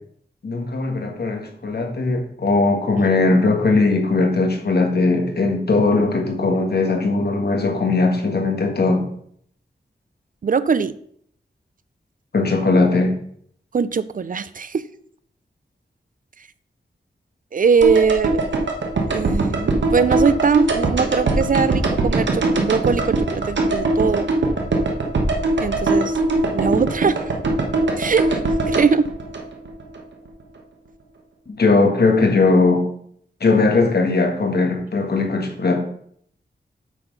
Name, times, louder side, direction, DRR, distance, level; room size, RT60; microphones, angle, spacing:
voice 1, 0.4-9.1 12.3-13.1 31.6-32.9 33.4-35.8, left 3 dB, 60° left, 3 dB, 1.7 m, -19 dB
voice 2, 10.4-11.0 13.7-14.9 17.5-18.4 19.1-24.3 25.6-26.2 26.5-27.2 28.0-28.4 28.7-29.1, right 5 dB, 50° right, 15 dB, 0.4 m, -21 dB
sound 1, 17.8-30.0 30.3-30.4, right 2 dB, 90° right, 1.2 m, -21 dB
8.1 x 4.3 x 5.4 m, 0.64 s
wide cardioid pair, 90°, 18 cm